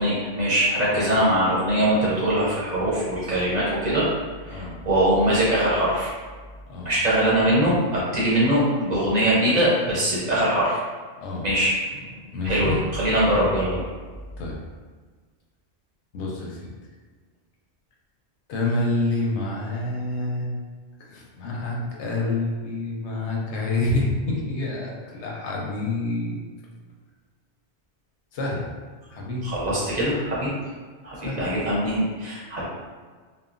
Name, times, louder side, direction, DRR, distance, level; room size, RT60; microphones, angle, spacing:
voice 1, 0.0-4.1 4.4-6.1 6.8-10.8 11.4-12.1 12.4-13.8 29.4-30.5 31.0-32.6, right 1 dB, 45° right, -7 dB, 0.8 m, -22 dB
voice 2, 4.5-4.8 6.7-6.9 11.2-11.5 12.3-12.8 14.4-14.7 16.1-16.7 18.5-20.6 21.0-26.4 28.3-28.7 29.1-29.5 31.2-31.5, left 2 dB, 80° left, -2 dB, 0.9 m, -28 dB
3.0 x 2.1 x 2.4 m, 1.5 s
omnidirectional pair, 1.1 m